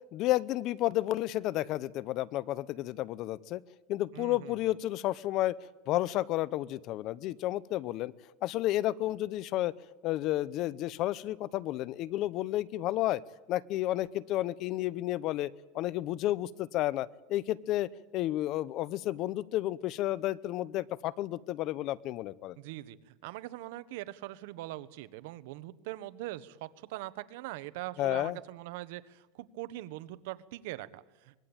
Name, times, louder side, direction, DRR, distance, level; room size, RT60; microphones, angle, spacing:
voice 1, 0.1-3.6 3.9-5.5 5.9-8.1 8.4-9.7 10.0-13.2 13.5-15.5 15.7-22.6 28.0-28.4, left 15 dB, 45° left, 20 dB, 0.8 m, -31 dB
voice 2, 4.1-4.5 22.6-31.4, right 16 dB, 70° right, 14 dB, 1.2 m, -42 dB
24.5 x 21.5 x 8.9 m, 1.1 s
supercardioid pair, 145°, 0 cm